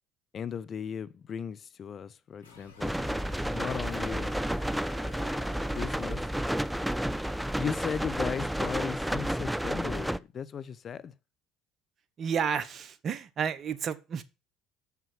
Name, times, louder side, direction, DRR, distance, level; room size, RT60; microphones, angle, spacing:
voice 1, 0.3-2.9 3.5-4.4 5.7-6.3 7.5-11.1, left 7 dB, 45° left, 0.8 m, -36 dB
sound 1, 2.4-9.1, left 5 dB, 90° left, 2.1 m, -54 dB
sound 2, 2.8-10.2, equal, 5° right, 0.5 m, -31 dB
voice 2, 12.2-14.2, right 7 dB, 45° right, 1.0 m, -31 dB
7.2 x 6.0 x 7.2 m
hypercardioid pair, 70°, 0 cm